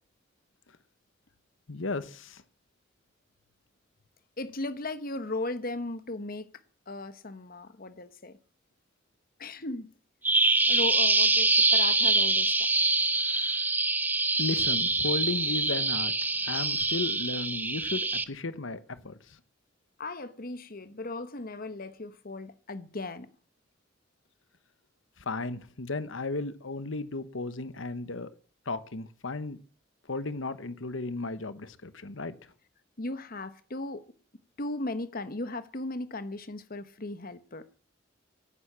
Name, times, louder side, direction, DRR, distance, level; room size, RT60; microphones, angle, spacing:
voice 1, 1.7-2.4 13.1-13.7 14.4-19.4 25.2-28.3 28.7-29.6 30.1-32.3, left 3 dB, 80° left, 1.1 m, -35 dB
voice 2, 4.4-6.5 6.9-8.4 9.4-9.9 10.7-12.7 20.0-23.3 33.0-34.1 34.6-37.6, left 2 dB, 50° left, 1.2 m, -36 dB
Bird vocalization bird call bird song, 10.2-18.2, right 2 dB, 10° right, 0.8 m, -25 dB
17.0 x 9.7 x 7.4 m
head